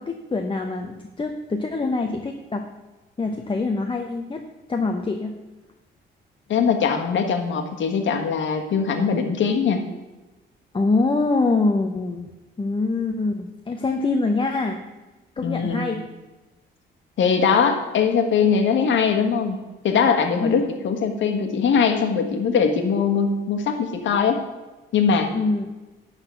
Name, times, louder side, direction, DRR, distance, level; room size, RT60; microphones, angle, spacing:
voice 1, 0.0-2.6 3.2-5.3 10.7-12.3 12.6-14.8 15.4-16.0 20.4-20.6 25.3-25.7, left 3 dB, 25° left, 3 dB, 0.9 m, -24 dB
voice 2, 6.5-9.9 15.4-15.8 17.2-19.6 19.8-24.4 24.9-25.3, left 6 dB, 70° left, 5 dB, 1.5 m, -21 dB
11.5 x 4.2 x 8.1 m, 1.1 s
cardioid pair, 90°, 20 cm